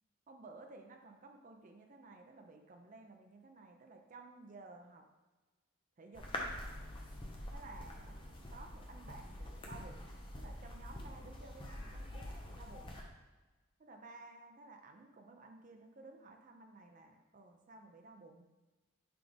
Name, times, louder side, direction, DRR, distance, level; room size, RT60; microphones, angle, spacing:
voice 1, 0.3-5.0 6.0-6.3 7.5-10.1 10.3-12.9 13.8-18.5, right 3 dB, 35° right, 3 dB, 0.5 m, -55 dB
sound 1, 6.1-13.0, left 1 dB, 25° left, 0.7 m, -46 dB
5.9 x 4.9 x 3.4 m, 1.2 s
head